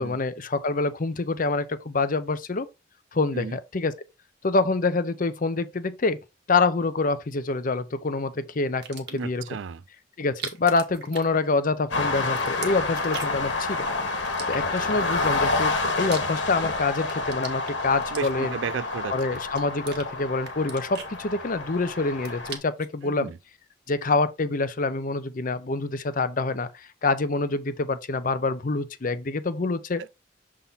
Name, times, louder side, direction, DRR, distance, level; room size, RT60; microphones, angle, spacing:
voice 1, 0.0-2.7 3.1-3.9 4.4-6.2 6.5-9.4 10.2-13.9 14.5-18.5 19.1-23.3 23.9-30.0, left 3 dB, 45° left, 0.7 m, -26 dB
sound 1, 8.8-9.4 10.2-11.9 12.1-13.5 14.3-15.1 15.6-16.7 17.0-18.7 19.2-20.1 20.4-21.7 22.0-22.9, right 6 dB, 60° right, 1.6 m, -40 dB
voice 2, 9.1-9.8 14.6-14.7 18.1-19.1 23.0-23.4 30.0-30.1, right 6 dB, 85° right, 0.4 m, -33 dB
sound 2, 11.9-22.6, left 3 dB, 80° left, 1.5 m, -29 dB
7.0 x 3.7 x 4.0 m
head